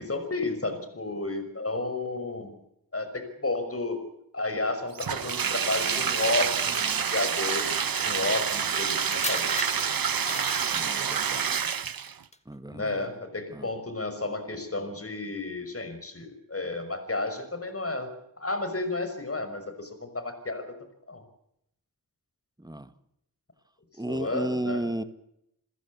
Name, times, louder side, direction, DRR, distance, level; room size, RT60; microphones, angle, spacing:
voice 1, 0.0-2.6 2.9-4.0 4.3-7.6 8.0-9.6 12.7-18.1 18.4-20.7 21.1-21.2 24.1-24.9, left 2 dB, 40° left, 9 dB, 5.9 m, -32 dB
Bathtub (filling or washing), 4.9-12.2, right 7 dB, 70° right, 1.1 m, -28 dB
sound 1, 8.2-11.3 12.1-12.4, left 2 dB, 20° left, 1.9 m, -38 dB
voice 2, 10.7-11.6 12.4-13.1 13.5-13.7 22.6-22.9 24.0-25.0, right 1 dB, 10° right, 12 dB, 1.7 m, -33 dB
28.5 x 15.5 x 8.5 m, 0.80 s
wide cardioid pair, 65°, 36 cm